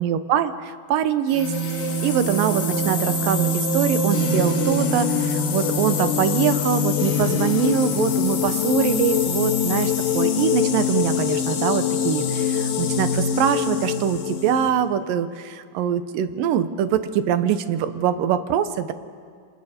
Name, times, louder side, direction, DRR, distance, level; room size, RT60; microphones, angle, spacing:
voice 1, 0.0-18.9, right 9 dB, 85° right, 11 dB, 2.6 m, -23 dB
sound 1, 1.3-14.7, left 4 dB, 90° left, 3.4 m, -23 dB
29.5 x 27.0 x 4.4 m, 2.1 s
omnidirectional pair, 3.8 m